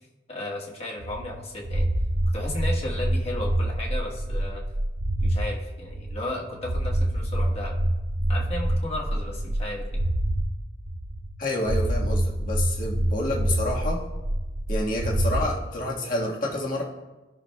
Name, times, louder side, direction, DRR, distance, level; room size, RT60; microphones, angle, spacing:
voice 1, 0.3-1.9 2.3-4.6 5.2-7.7 8.3-10.0, left 1 dB, 35° left, -2 dB, 1.5 m, -34 dB
sound 1, 1.0-5.5 5.8-10.5 10.8-11.4 11.6-15.5, right 1 dB, 75° right, 0.8 m, -26 dB
voice 2, 11.4-14.0 14.7-16.8, left 1 dB, 50° left, -2 dB, 1.6 m, -29 dB
16.0 x 6.0 x 2.3 m, 1.1 s
head